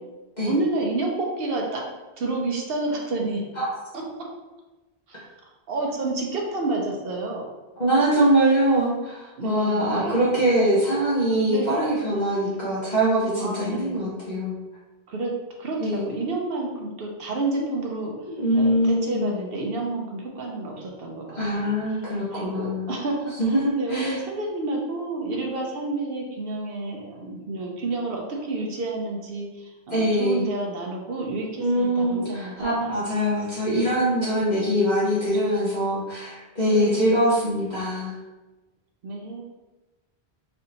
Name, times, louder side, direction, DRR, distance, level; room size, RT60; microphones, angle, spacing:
voice 1, 0.4-1.8 2.2-3.4 3.9-4.0 5.1-5.2 5.7-7.4 9.4-10.5 11.5-11.7 12.4-12.5 13.3-14.2 15.1-15.3 15.6-18.3 18.5-22.0 22.3-23.3 23.8-33.0 36.7-37.0 39.0-39.4, right 2 dB, 65° right, 0 dB, 0.8 m, -30 dB
voice 2, 7.8-14.6 15.8-16.1 17.6-17.8 18.3-19.3 21.3-22.9 23.4-24.1 29.9-30.5 31.6-38.2, right 1 dB, 45° left, -8 dB, 1.0 m, -23 dB
3.3 x 2.7 x 4.0 m, 1.1 s
omnidirectional pair, 1.1 m